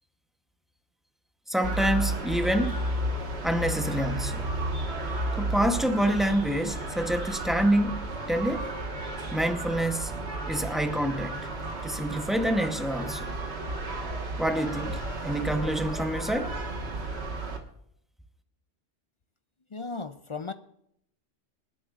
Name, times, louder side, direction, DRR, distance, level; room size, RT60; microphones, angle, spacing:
voice 1, 1.5-2.8 3.4-4.5 5.3-8.7 9.3-10.2 10.5-11.5 11.8-13.3 14.4-16.6, right 1 dB, ahead, 0.7 m, -27 dB
sound 1, 1.6-17.6, right 2 dB, 60° right, 1.8 m, -33 dB
voice 2, 19.7-20.5, left 4 dB, 55° left, 0.3 m, -35 dB
26.5 x 10.5 x 2.4 m
omnidirectional pair, 1.2 m